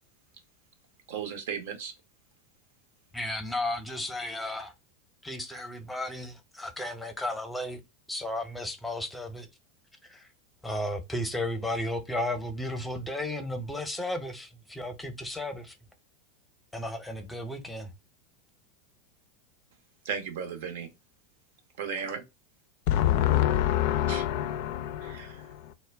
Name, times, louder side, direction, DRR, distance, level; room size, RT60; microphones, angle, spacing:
voice 1, 1.1-1.9 20.0-20.9 21.8-22.2 24.1-24.2 25.0-25.4, right 7 dB, 70° right, 0.7 m, -35 dB
voice 2, 3.1-4.7 5.2-7.8 8.1-9.5 10.0-10.3 10.6-15.7 16.7-17.9, left 1 dB, 5° left, 0.7 m, -34 dB
voice 3, 22.9-25.7, left 12 dB, 60° left, 0.4 m, -26 dB
2.1 x 2.1 x 3.3 m
hypercardioid pair, 95°, 0 cm